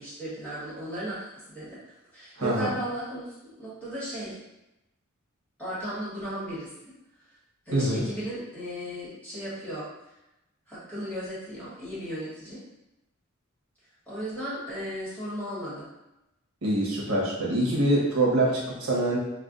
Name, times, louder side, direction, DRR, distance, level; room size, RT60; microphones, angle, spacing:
voice 1, 0.0-1.8 2.1-4.4 5.6-6.7 7.6-9.9 10.7-12.6 14.1-15.9, equal, 5° left, -10 dB, 1.4 m, -35 dB
voice 2, 2.4-2.7 7.7-8.0 16.6-19.2, right 1 dB, 75° right, -4 dB, 1.0 m, -24 dB
4.9 x 2.3 x 2.4 m, 0.91 s
head